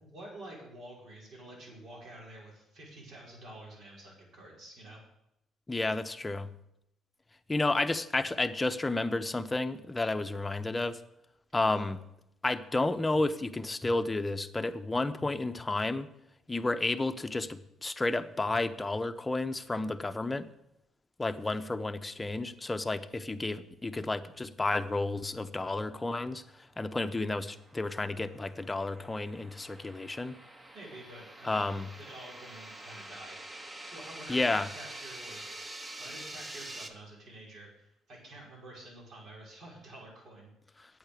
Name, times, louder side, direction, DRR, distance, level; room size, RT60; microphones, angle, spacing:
voice 1, 0.0-5.0 11.7-11.9 30.7-33.6 33.9-35.4 36.0-40.5, right 1 dB, 65° right, -2 dB, 5.5 m, -49 dB
voice 2, 5.7-6.5 7.5-11.0 11.5-12.0 12.4-16.1 16.5-20.5 21.2-26.4 26.8-30.3 31.4-31.9 34.3-34.7, left 2 dB, 20° left, 9 dB, 0.8 m, -31 dB
sound 1, 26.4-36.9, right 1 dB, 25° right, 1.5 m, -47 dB
8.8 x 8.7 x 6.8 m, 0.82 s
cardioid pair, 80°, 0 cm